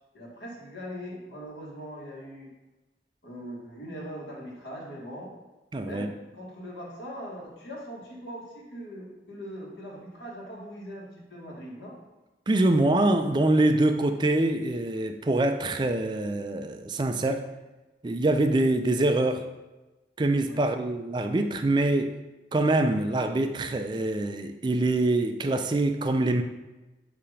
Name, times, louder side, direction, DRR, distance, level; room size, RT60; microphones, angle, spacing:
voice 1, 0.1-2.5 3.2-5.3 5.8-12.0 20.5-20.6, equal, 80° left, -3 dB, 1.7 m, -41 dB
voice 2, 5.7-6.1 12.5-17.4 18.0-19.4 20.2-22.2 22.5-26.4, right 2 dB, 25° right, 7 dB, 0.3 m, -24 dB
6.9 x 2.9 x 5.0 m, 1.1 s
head